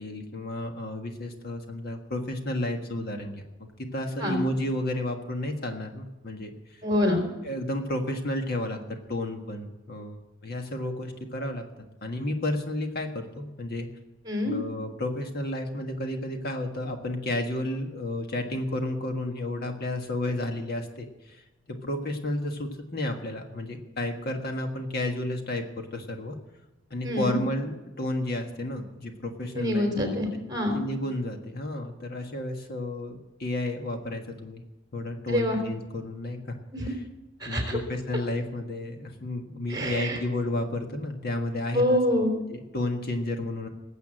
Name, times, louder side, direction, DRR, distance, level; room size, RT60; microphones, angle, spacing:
voice 1, 0.0-3.3 3.8-6.5 7.4-8.8 9.1-11.6 12.0-13.9 14.4-21.4 21.7-26.4 26.9-30.4 30.7-34.6 34.9-36.4 36.8-37.0 37.4-42.0 42.3-43.7, left 1 dB, 50° left, 4 dB, 1.5 m, -32 dB
voice 2, 6.8-7.2 14.3-14.5 27.0-27.4 29.6-30.8 35.3-35.6 36.7-36.9 37.4-37.8 39.7-40.2 41.7-42.3, left 1 dB, 20° right, 3 dB, 3.7 m, -26 dB
19.5 x 8.2 x 7.7 m, 1.0 s
head